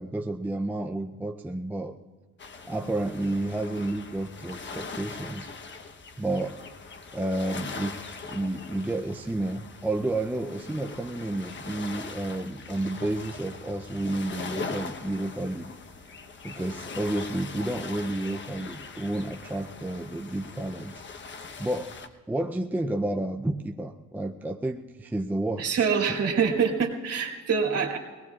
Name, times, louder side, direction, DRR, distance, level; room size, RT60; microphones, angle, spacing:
voice 1, 0.0-2.0 2.7-5.5 6.2-6.6 7.1-15.7 16.4-21.0 21.6-21.9 22.3-25.9, right 1 dB, 5° right, 3 dB, 0.5 m, -31 dB
sound 1, 2.4-22.1, left 4 dB, 40° left, 1.1 m, -41 dB
voice 2, 25.6-28.0, right 6 dB, 55° right, 0 dB, 2.7 m, -25 dB
24.0 x 19.0 x 2.4 m, 1.4 s
cardioid pair, 140°, 30 cm